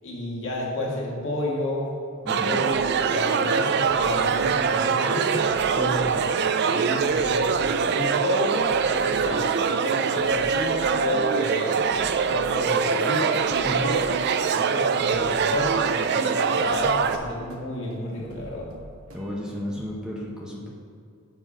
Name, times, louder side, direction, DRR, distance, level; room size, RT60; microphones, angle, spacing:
voice 1, 0.0-2.0 2.3-5.5 5.9-6.2 6.6-8.6 8.9-11.8 12.2-14.1 14.5-18.7, left 1 dB, 60° left, -4 dB, 1.9 m, -31 dB
voice 2, 2.2-2.6 5.7-6.2 13.6-13.9 19.1-20.7, equal, 5° right, -4 dB, 0.8 m, -32 dB
sound 1, 2.3-17.2, right 6 dB, 50° right, 0.4 m, -23 dB
sound 2, 2.7-19.9, right 1 dB, 75° right, 1.0 m, -45 dB
7.6 x 5.7 x 5.0 m, 2.2 s
head